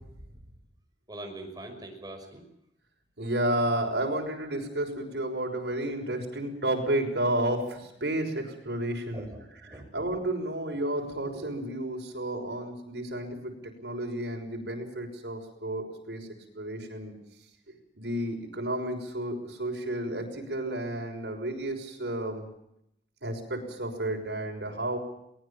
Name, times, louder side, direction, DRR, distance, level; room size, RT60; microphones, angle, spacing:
voice 1, 1.1-2.4 9.1-9.9, right 1 dB, 25° right, 4 dB, 5.8 m, -42 dB
voice 2, 3.2-9.3 9.9-16.3 16.5-17.1 17.7-22.4 23.2-25.0, right 1 dB, 70° right, 2 dB, 6.2 m, -31 dB
23.0 x 20.0 x 7.3 m, 0.80 s
head